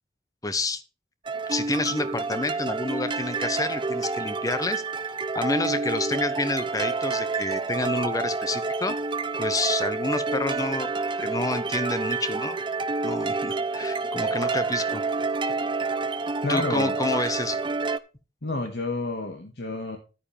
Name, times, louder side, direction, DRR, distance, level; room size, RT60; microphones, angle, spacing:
voice 1, 0.4-0.8 1.5-4.8 5.3-9.0 9.4-10.9 11.2-12.6 13.0-15.0 16.5-17.6, left 2 dB, 20° left, 12 dB, 1.0 m, -29 dB
sound 1, 1.3-18.0, right 4 dB, 25° right, 0.6 m, -28 dB
voice 2, 16.4-17.0 18.4-20.0, left 2 dB, 60° left, 4 dB, 1.7 m, -30 dB
11.5 x 9.5 x 3.4 m, 0.32 s
head